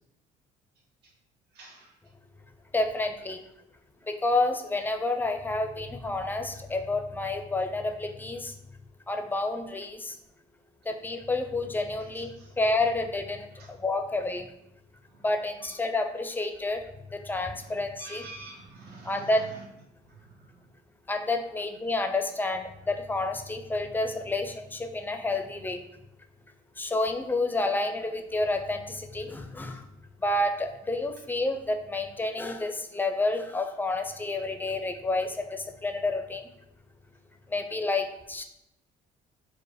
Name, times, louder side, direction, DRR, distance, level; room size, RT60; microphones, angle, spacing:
voice 1, 1.5-1.9 12.0-12.5 13.5-13.7 15.1-15.2 15.6-15.7 17.5-19.6 20.1-20.6, right 3 dB, 75° right, -2 dB, 1.1 m, -47 dB
voice 2, 2.7-3.4 4.0-8.5 9.1-10.2 10.9-14.5 15.2-16.8 17.1-18.2 19.0-19.4 21.1-25.8 26.8-29.8 30.2-36.4 37.5-38.4, left 2 dB, 10° left, 6 dB, 0.4 m, -29 dB
4.8 x 2.1 x 4.7 m, 0.83 s
cardioid pair, 110°, 17 cm